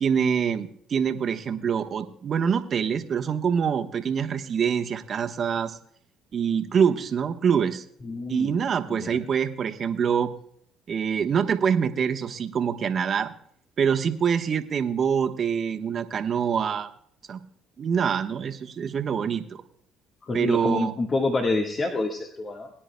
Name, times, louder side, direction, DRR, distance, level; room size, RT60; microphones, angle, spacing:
voice 1, 0.0-5.8 6.3-7.8 8.3-10.3 10.9-13.3 13.8-16.9 17.3-17.4 17.8-19.6 20.3-20.9, right 7 dB, 50° right, 6 dB, 1.1 m, -25 dB
voice 2, 8.0-8.5 8.9-9.2 20.2-22.7, left 3 dB, 35° left, 2 dB, 1.5 m, -27 dB
22.5 x 10.0 x 2.2 m, 0.64 s
supercardioid pair, 70°, 0 cm